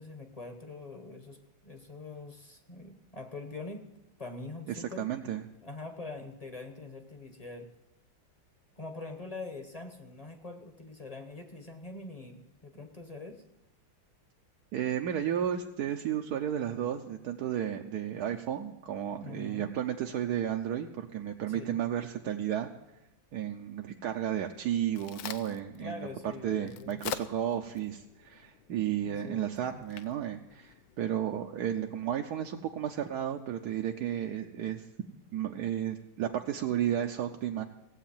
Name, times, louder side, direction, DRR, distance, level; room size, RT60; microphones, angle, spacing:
voice 1, 0.0-1.4 1.6-3.9 4.2-5.1 5.6-7.7 8.8-13.4 19.2-19.8 21.5-21.8 25.8-27.0 29.0-29.8, left 3 dB, 25° left, 6 dB, 0.8 m, -44 dB
voice 2, 4.7-5.4 14.7-22.7 23.3-26.1 26.4-34.8 35.3-37.6, right 10 dB, 65° right, 3 dB, 1.1 m, -33 dB
Crack, 24.5-31.4, left 9 dB, 75° left, 1.4 m, -45 dB
16.5 x 8.3 x 7.2 m, 0.90 s
omnidirectional pair, 2.2 m